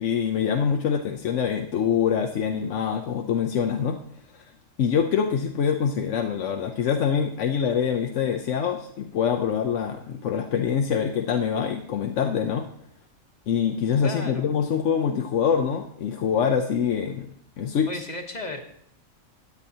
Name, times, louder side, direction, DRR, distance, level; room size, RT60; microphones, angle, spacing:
voice 1, 0.0-4.0 4.3-4.4 4.8-12.7 13.5-17.3 17.6-17.9, left 7 dB, 70° left, 4 dB, 1.0 m, -25 dB
voice 2, 14.0-14.5 17.9-18.6, left 2 dB, 35° left, 4 dB, 1.1 m, -34 dB
16.5 x 9.0 x 2.8 m, 0.68 s
omnidirectional pair, 1.3 m